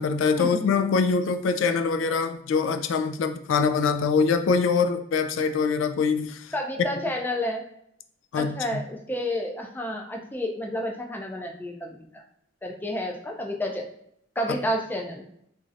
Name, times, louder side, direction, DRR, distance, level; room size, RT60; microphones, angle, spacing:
voice 1, 0.0-6.5 8.3-8.6, left 5 dB, 85° left, 9 dB, 0.3 m, -24 dB
voice 2, 6.5-7.7 8.4-12.2 12.6-13.9 14.4-15.2, left 1 dB, 10° left, 1 dB, 0.3 m, -30 dB
3.1 x 2.6 x 2.4 m, 0.72 s
head